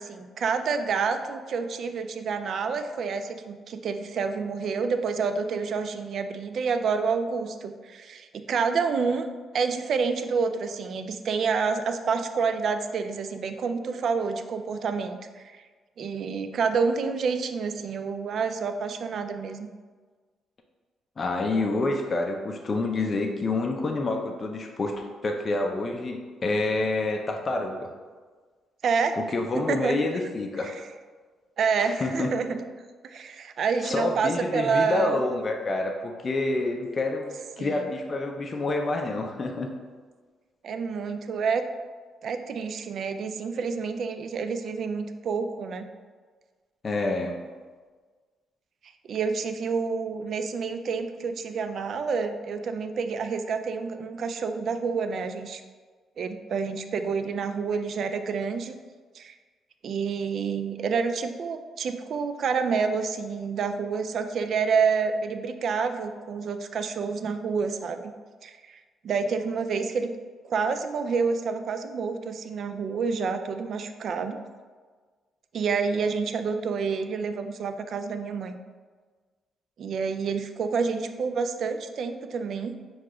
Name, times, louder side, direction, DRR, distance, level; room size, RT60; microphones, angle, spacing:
voice 1, 0.0-9.3 9.5-15.6 16.0-19.7 28.8-29.1 29.7-30.0 30.6-30.7 31.6-32.7 33.0-35.2 37.6-37.8 40.6-41.6 42.2-45.9 49.1-55.6 56.2-58.7 59.1-59.3 59.8-68.1 68.4-68.8 69.0-70.1 70.4-74.4 75.5-78.6 79.8-82.7, right 5 dB, 60° right, 8 dB, 0.3 m, -28 dB
voice 2, 21.2-27.9 29.2-30.7 31.8-32.4 33.8-39.7 46.8-47.4, left 2 dB, 35° left, 2 dB, 0.4 m, -28 dB
4.7 x 2.4 x 3.7 m, 1.5 s
cardioid pair, 90°, 0 cm